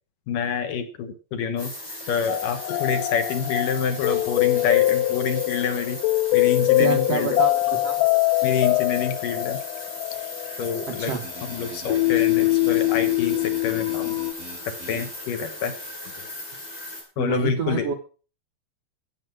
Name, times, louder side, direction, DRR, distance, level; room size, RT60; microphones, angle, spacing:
voice 1, 0.3-1.7 2.1-6.0 6.3-7.4 8.4-9.6 10.6-11.1 11.4-14.2 14.7-15.7 17.2-17.9, left 6 dB, 65° left, 8 dB, 2.4 m, -27 dB
sound 1, 1.6-17.0, left 1 dB, 25° left, 6.7 m, -38 dB
sound 2, 2.3-14.3, left 18 dB, 85° left, 1.9 m, -23 dB
voice 2, 6.8-8.0 10.9-11.2 17.2-17.9, right 7 dB, 65° right, 3 dB, 1.6 m, -28 dB
sound 3, 11.0-16.3, equal, 40° right, 5.5 m, -44 dB
14.5 x 8.6 x 6.1 m, 0.38 s
omnidirectional pair, 4.7 m